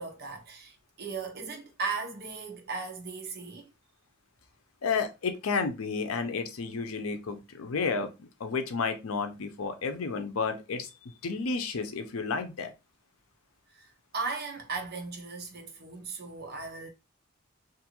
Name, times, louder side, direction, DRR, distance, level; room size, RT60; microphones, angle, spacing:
voice 1, 0.0-3.7 13.7-16.9, right 4 dB, 50° right, 0.7 m, -37 dB
voice 2, 4.8-12.7, left 4 dB, 85° left, 0.5 m, -32 dB
2.6 x 2.4 x 2.9 m
head